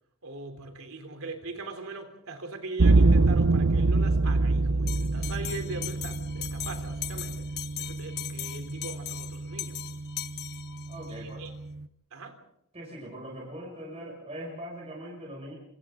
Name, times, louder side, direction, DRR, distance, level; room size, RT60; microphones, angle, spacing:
voice 1, 0.2-7.5 7.8-9.8 11.1-11.5 12.1-12.4, right 3 dB, 65° right, 3.5 m, -40 dB
sound 1, 2.8-11.8, right 3 dB, 90° right, 0.8 m, -26 dB
Bell, 4.9-11.1, left 12 dB, 50° left, 1.3 m, -39 dB
voice 2, 10.9-11.4 12.7-15.6, right 1 dB, 30° right, 6.5 m, -41 dB
28.5 x 27.5 x 3.8 m
head